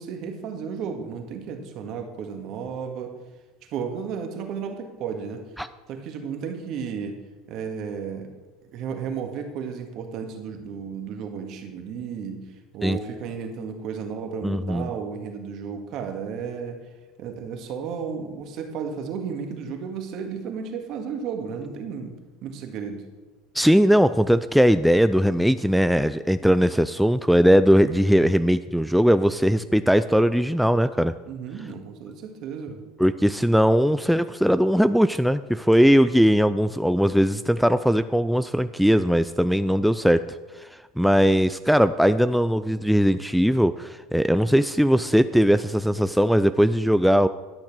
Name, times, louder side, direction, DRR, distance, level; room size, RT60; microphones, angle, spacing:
voice 1, 0.0-3.2 3.7-5.4 5.9-7.2 7.5-8.3 8.7-12.4 12.7-16.8 17.2-22.1 22.4-23.0 31.3-32.8, right 6 dB, 55° right, 5 dB, 1.8 m, -33 dB
voice 2, 14.4-14.9 23.5-31.1 33.0-47.3, equal, ahead, 11 dB, 0.4 m, -20 dB
11.5 x 6.5 x 6.1 m, 1.2 s
hypercardioid pair, 90°, 0 cm